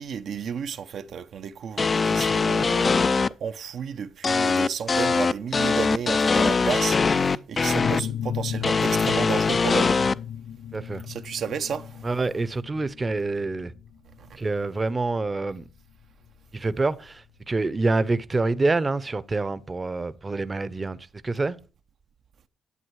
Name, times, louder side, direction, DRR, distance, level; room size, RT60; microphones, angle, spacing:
voice 1, 0.0-10.0 11.1-12.1 14.2-14.4, right 7 dB, 60° right, 0.7 m, -32 dB
sound 1, 1.8-3.3 4.2-8.0 8.6-10.1, left 4 dB, 35° left, 0.4 m, -22 dB
sound 2, 7.8-17.2, left 9 dB, 85° left, 0.5 m, -35 dB
voice 2, 10.7-11.0 12.0-13.7 14.4-15.7 16.5-21.0 21.2-21.6, right 3 dB, 25° right, 0.7 m, -26 dB
11.0 x 8.0 x 4.7 m
cardioid pair, 90°, 0 cm